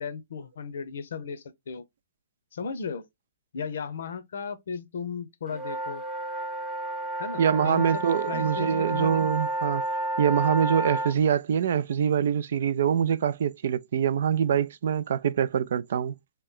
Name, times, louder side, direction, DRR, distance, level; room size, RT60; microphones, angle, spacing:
voice 1, 0.0-1.8 2.5-3.0 3.5-6.0 7.2-9.2, left 6 dB, 70° left, 0.6 m, -35 dB
sound 1, 5.5-11.1, right 1 dB, 15° right, 0.7 m, -31 dB
voice 2, 7.4-9.8 10.2-16.1, right 8 dB, 65° right, 0.3 m, -24 dB
3.3 x 3.0 x 3.6 m
hypercardioid pair, 135°, 0 cm